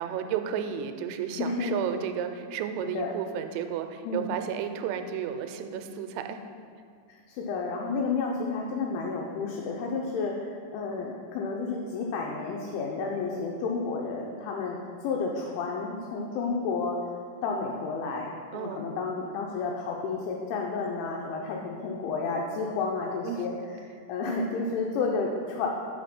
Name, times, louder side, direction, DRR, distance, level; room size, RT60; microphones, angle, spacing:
voice 1, 0.0-6.4 18.5-18.9 23.2-23.4, right 8 dB, 85° right, 8 dB, 3.2 m, -32 dB
voice 2, 1.4-1.8 2.8-3.1 4.0-4.3 7.1-14.8 15.0-17.0 17.4-23.5 24.1-25.7, left 4 dB, 80° left, -1 dB, 2.9 m, -31 dB
6.3 x 5.9 x 5.9 m, 2.1 s
omnidirectional pair, 5.8 m